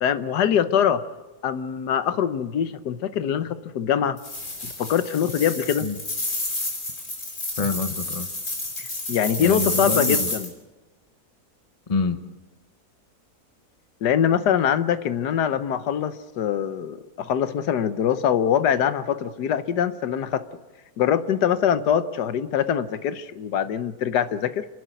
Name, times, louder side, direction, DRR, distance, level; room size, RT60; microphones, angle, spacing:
voice 1, 0.0-1.0 1.4-4.2 4.8-5.9 8.8-10.5 14.0-20.4 21.0-24.7, left 8 dB, 85° left, 12 dB, 1.5 m, -23 dB
sound 1, 4.2-10.5, left 2 dB, 50° left, 3.8 m, -29 dB
voice 2, 7.6-8.3 9.4-10.3 11.9-12.2, left 4 dB, 25° left, 10 dB, 0.9 m, -26 dB
30.0 x 11.5 x 8.2 m, 1.2 s
omnidirectional pair, 1.7 m